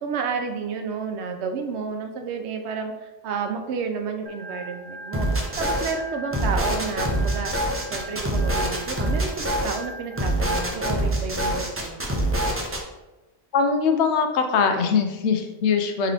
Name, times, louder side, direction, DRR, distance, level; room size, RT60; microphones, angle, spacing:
voice 1, 0.0-7.5 7.9-12.1, right 5 dB, 85° right, 5 dB, 0.9 m, -31 dB
Organ, 4.3-10.7, right 1 dB, 55° right, 0.9 m, -41 dB
sound 1, 5.1-5.9 6.3-9.8 10.2-12.8, right 1 dB, 20° right, 0.3 m, -25 dB
voice 2, 13.5-16.1, left 5 dB, 85° left, 5 dB, 0.9 m, -22 dB
3.8 x 3.3 x 3.3 m, 1.1 s
omnidirectional pair, 1.1 m